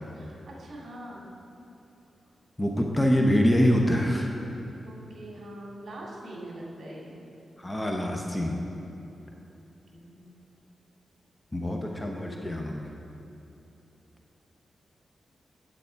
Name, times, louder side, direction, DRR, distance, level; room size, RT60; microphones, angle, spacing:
voice 1, 0.1-1.3 4.9-7.2 9.9-10.3, right 1 dB, 55° right, -4 dB, 2.5 m, -43 dB
voice 2, 2.6-4.3 7.6-8.6 11.5-12.9, equal, 15° left, 1 dB, 0.9 m, -25 dB
9.6 x 8.0 x 4.6 m, 2.9 s
wide cardioid pair, 100°, 0 cm